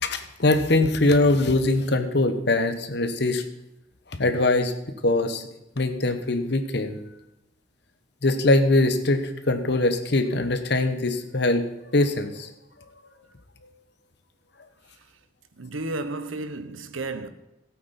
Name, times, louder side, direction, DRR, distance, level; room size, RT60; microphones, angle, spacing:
voice 1, 0.0-3.4 4.2-4.7 5.0-5.4 5.8-7.0 8.2-11.7 11.9-12.5, left 2 dB, 55° left, 1.1 m, -22 dB
voice 2, 15.6-17.3, right 2 dB, 85° right, 0.9 m, -32 dB
16.0 x 8.4 x 4.3 m
head